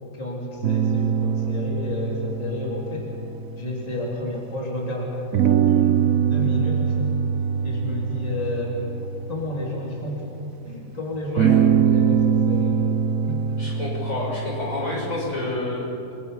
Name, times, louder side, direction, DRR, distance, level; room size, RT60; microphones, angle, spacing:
voice 1, 0.0-3.1 3.6-5.2 5.6-7.1 7.6-8.9 9.3-12.9 13.2-13.4, left 1 dB, 25° left, -3 dB, 3.4 m, -31 dB
sound 1, 0.6-4.5 5.3-10.4 11.4-15.6, right 7 dB, 85° right, 1.2 m, -23 dB
voice 2, 11.3-11.6 13.6-16.1, left 2 dB, 75° left, -4 dB, 7.0 m, -29 dB
29.5 x 22.5 x 5.7 m, 2.8 s
omnidirectional pair, 1.4 m